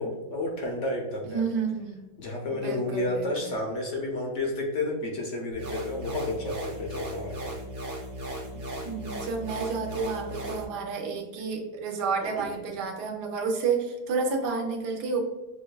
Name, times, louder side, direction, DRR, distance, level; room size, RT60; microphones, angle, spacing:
voice 1, 0.0-1.4 2.2-7.5 12.4-12.6, left 2 dB, 65° left, 0 dB, 0.7 m, -31 dB
voice 2, 1.2-2.0 2.6-3.5 8.8-15.2, right 5 dB, 85° right, 2 dB, 1.2 m, -30 dB
sound 1, 5.5-10.6, right 1 dB, 60° right, 1.3 m, -37 dB
6.0 x 2.2 x 2.2 m, 1.1 s
omnidirectional pair, 1.8 m